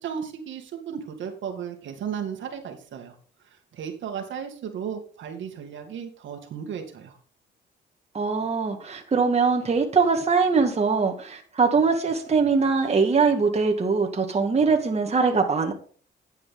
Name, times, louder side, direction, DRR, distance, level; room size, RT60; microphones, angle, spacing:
voice 1, 0.0-3.1 3.7-7.2, right 7 dB, 70° right, 4 dB, 2.2 m, -34 dB
voice 2, 8.1-15.7, right 4 dB, 30° right, 2 dB, 2.1 m, -22 dB
11.0 x 8.2 x 3.8 m, 0.43 s
cardioid pair, 90°, 20 cm